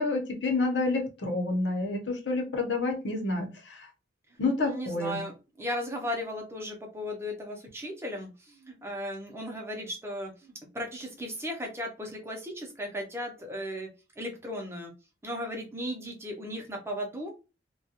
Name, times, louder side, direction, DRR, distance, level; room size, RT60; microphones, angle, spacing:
voice 1, 0.0-3.9 4.4-5.2, left 3 dB, 85° left, 3 dB, 0.8 m, -29 dB
voice 2, 4.6-13.9 14.2-14.9 15.2-17.3, equal, 15° right, 1 dB, 0.6 m, -36 dB
2.3 x 2.2 x 2.8 m, 0.31 s
head